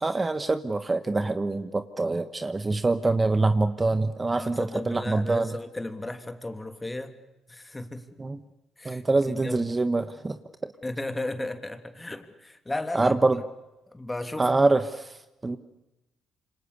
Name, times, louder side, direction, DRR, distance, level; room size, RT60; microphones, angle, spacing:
voice 1, 0.0-5.6 8.2-8.4 8.8-10.4 12.9-13.4 14.4-15.6, right 3 dB, 25° right, 9 dB, 1.4 m, -25 dB
voice 2, 4.3-7.1 7.5-8.2 8.8-9.0 9.3-9.7 10.8-13.1 13.9-14.5, left 2 dB, 15° left, 7 dB, 3.1 m, -34 dB
27.5 x 25.5 x 6.9 m, 1.0 s
supercardioid pair, 75°, 0 cm